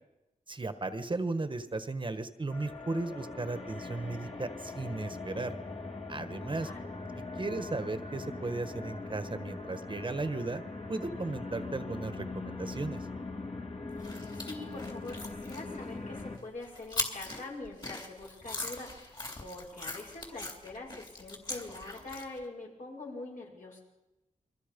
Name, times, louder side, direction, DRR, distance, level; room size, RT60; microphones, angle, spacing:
voice 1, 0.5-5.5 6.1-6.7 7.4-10.6 10.9-13.1, right 3 dB, 35° right, 10 dB, 1.4 m, -35 dB
sound 1, 2.5-16.4, left 3 dB, 45° left, 2.8 m, -41 dB
voice 2, 6.5-7.0 14.0-23.8, left 2 dB, 70° left, -2 dB, 7.4 m, -44 dB
sound 2, 14.0-22.5, left 2 dB, 30° left, 3.4 m, -41 dB
29.0 x 23.0 x 5.4 m, 0.97 s
wide cardioid pair, 85°, 14 cm